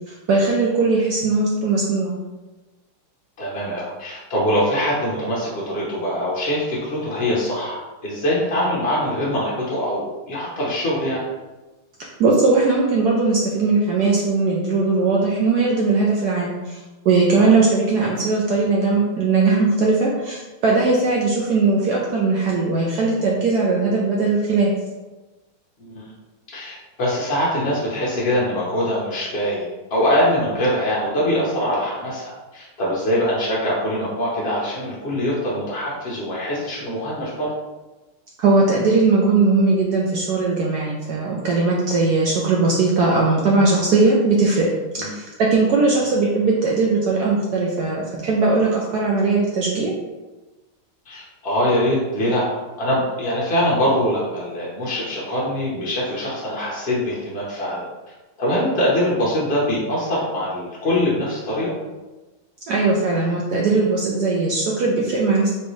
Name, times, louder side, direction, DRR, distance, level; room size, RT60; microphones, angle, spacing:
voice 1, 0.1-2.2 12.2-16.8 17.0-24.7 38.4-44.7 44.9-49.9 62.7-65.5, right 3 dB, 80° right, -3 dB, 0.8 m, -19 dB
voice 2, 3.4-11.2 17.4-17.5 25.9-26.1 26.5-37.5 45.0-45.1 45.9-46.1 51.1-57.8 58.4-61.7, equal, 70° left, -6 dB, 0.5 m, -23 dB
4.3 x 3.2 x 3.1 m, 1.1 s
omnidirectional pair, 2.4 m